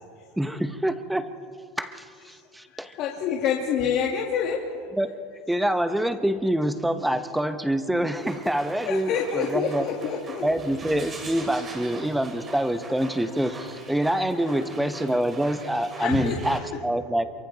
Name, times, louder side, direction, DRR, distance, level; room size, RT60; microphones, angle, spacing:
voice 1, 0.4-1.3 1.8-2.9 5.0-5.1 5.5-9.9 10.4-17.2, right 1 dB, 5° right, 10 dB, 1.0 m, -26 dB
voice 2, 2.7-4.6 8.8-10.4 16.0-16.3, left 7 dB, 50° left, -1 dB, 2.1 m, -27 dB
sound 1, 8.1-16.6, right 3 dB, 25° right, 3.0 m, -42 dB
28.0 x 24.0 x 4.1 m, 2.4 s
supercardioid pair, 145°, 0 cm